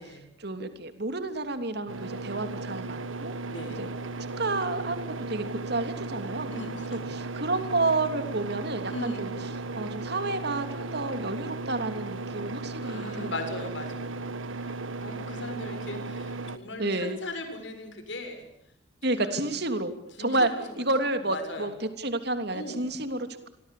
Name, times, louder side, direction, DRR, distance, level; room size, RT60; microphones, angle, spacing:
voice 1, 0.4-3.3 3.8-3.9 4.4-6.5 7.1-9.3 9.7-13.3 16.8-17.2 19.0-19.9 20.2-20.5 20.8-21.7 22.0-23.5, right 2 dB, 55° right, 8 dB, 3.2 m, -30 dB
sound 1, 1.9-16.6, right 3 dB, 85° right, 1.5 m, -36 dB
voice 2, 3.5-3.9 6.5-7.2 8.9-9.3 12.8-14.3 14.6-18.5 19.1-19.3 20.2-20.8 21.3-21.7 22.5-22.8, left 1 dB, 70° left, 6 dB, 7.3 m, -39 dB
28.5 x 24.5 x 8.5 m, 0.77 s
head